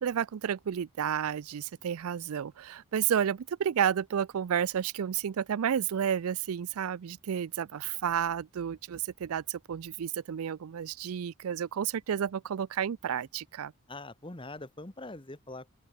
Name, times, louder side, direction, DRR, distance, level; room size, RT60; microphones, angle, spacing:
voice 1, 0.0-13.7, right 8 dB, 80° right, 0.4 m, -31 dB
voice 2, 13.9-15.7, left 2 dB, 25° left, 1.4 m, -43 dB
open air
head